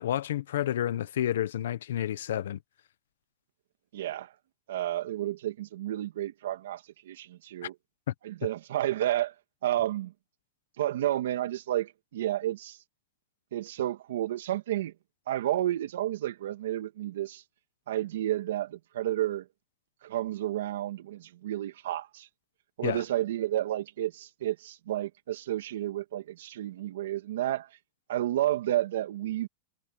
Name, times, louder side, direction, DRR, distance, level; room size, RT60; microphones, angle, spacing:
voice 1, 0.0-2.6 7.6-7.7 8.1-8.2 22.8-23.0, left 11 dB, 80° left, 1.1 m, -30 dB
voice 2, 3.9-4.3 4.7-7.7 8.2-9.3 9.6-10.1 10.8-12.8 13.5-14.9 15.3-17.4 17.9-19.4 20.0-22.3 22.8-27.7 28.1-29.5, right 13 dB, 70° right, 2.6 m, -31 dB
supercardioid pair, 175°, 0 cm